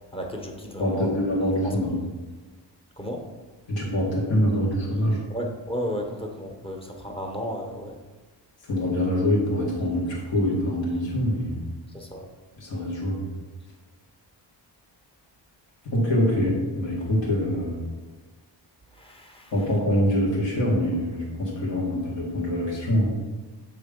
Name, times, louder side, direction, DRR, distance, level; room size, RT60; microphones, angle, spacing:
voice 1, 0.1-1.2 1.6-1.8 3.0-3.3 5.3-8.0 11.9-12.3 18.9-19.5, equal, 15° left, 1 dB, 1.0 m, -33 dB
voice 2, 0.8-2.0 3.7-5.2 8.6-11.7 12.6-13.3 15.9-17.9 19.5-23.1, equal, 80° left, -5 dB, 1.8 m, -24 dB
6.7 x 3.4 x 5.1 m, 1.3 s
wide cardioid pair, 100°, 43 cm